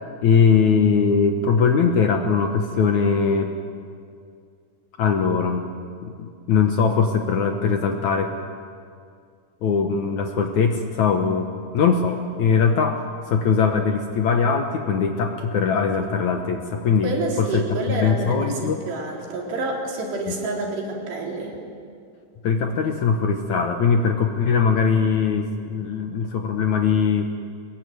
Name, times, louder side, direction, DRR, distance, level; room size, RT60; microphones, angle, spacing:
voice 1, 0.2-3.5 5.0-5.7 6.0-8.3 9.6-11.5 11.7-13.0 13.3-17.1 17.4-18.8 22.4-27.4, left 6 dB, 65° left, 4 dB, 2.0 m, -21 dB
voice 2, 17.0-21.6, right 2 dB, 90° right, -1 dB, 5.9 m, -28 dB
23.0 x 21.0 x 9.4 m, 2.2 s
omnidirectional pair, 4.7 m